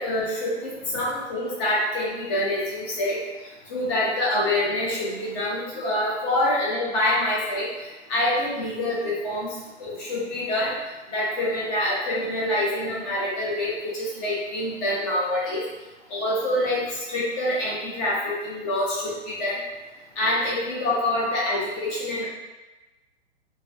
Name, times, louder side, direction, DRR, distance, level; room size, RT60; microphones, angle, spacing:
voice 1, 0.0-3.2 3.7-7.7 8.1-9.5 9.8-10.7 11.1-15.6 16.1-19.6 20.2-22.3, left 1 dB, 25° left, -6 dB, 0.8 m, -26 dB
2.3 x 2.2 x 2.4 m, 1.1 s
figure-of-eight pair, 115°, 36 cm